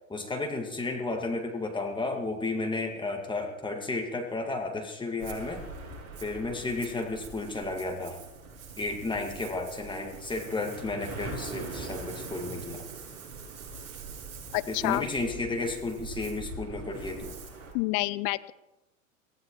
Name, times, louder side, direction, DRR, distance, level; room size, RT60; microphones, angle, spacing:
voice 1, 0.1-5.6 6.2-8.2 8.8-12.9 14.7-17.4, left 2 dB, 10° left, 3 dB, 1.8 m, -33 dB
Ocean, 5.2-17.7, right 3 dB, 35° right, 7.6 m, -42 dB
voice 2, 14.5-15.1 17.7-18.5, left 21 dB, 40° left, 16 dB, 0.6 m, -28 dB
23.5 x 15.5 x 3.0 m, 0.97 s
figure-of-eight pair, 95°, 42 cm